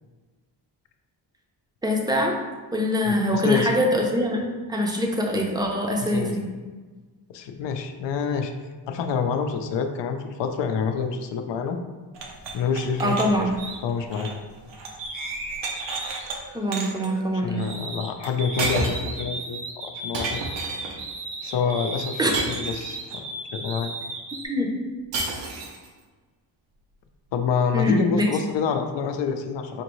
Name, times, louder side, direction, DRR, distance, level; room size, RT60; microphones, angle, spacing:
voice 1, 1.8-2.3 2.7-4.4 4.7-6.5 13.0-13.6 16.5-17.6 22.2-22.3 24.5-24.7 27.7-28.3, equal, 10° right, 1 dB, 0.5 m, -23 dB
voice 2, 3.0-3.9 6.0-6.4 7.3-8.5 8.9-11.8 12.5-13.5 13.8-14.4 17.4-20.4 21.4-22.2 22.4-23.2 23.5-23.9 27.3-29.8, left 6 dB, 75° left, 6 dB, 0.6 m, -27 dB
sound 1, 12.1-15.1 15.3-16.4 16.7-17.1 18.2-18.3 18.6-19.2 20.1-21.0 22.3-23.2 25.1-25.9, right 3 dB, 80° right, 0.7 m, -31 dB
sound 2, 13.6-13.8 15.0-18.1 18.4-24.5, right 2 dB, 45° right, 0.7 m, -35 dB
5.1 x 2.7 x 3.0 m, 1.3 s
cardioid pair, 115°, 43 cm